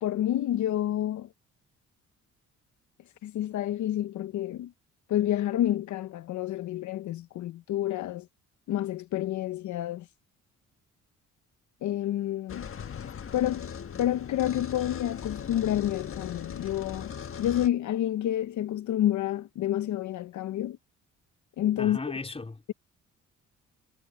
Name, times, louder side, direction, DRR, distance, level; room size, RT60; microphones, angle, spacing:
voice 1, 0.0-1.3 3.2-4.7 5.1-8.3 8.7-10.1 11.8-12.7 13.3-13.7 14.0-20.8 21.6-22.0, left 12 dB, 70° left, 0.8 m, -29 dB
sound 1, 12.5-17.7, left 7 dB, 45° left, 1.5 m, -39 dB
voice 2, 21.8-22.7, left 3 dB, 20° left, 3.8 m, -37 dB
cardioid pair, 90°, 30 cm